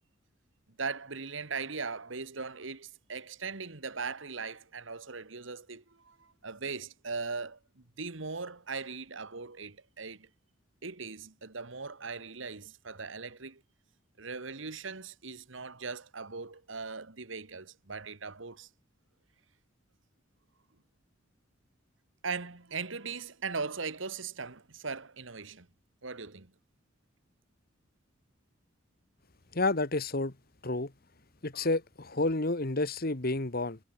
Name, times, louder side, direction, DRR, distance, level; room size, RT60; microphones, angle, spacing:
voice 1, 0.8-10.3 10.8-13.6 14.2-18.7 22.2-25.7 26.0-26.5, right 4 dB, 70° right, 1.7 m, -39 dB
voice 2, 29.5-30.3 30.6-30.9 31.4-33.8, left 2 dB, 50° left, 1.6 m, -30 dB
head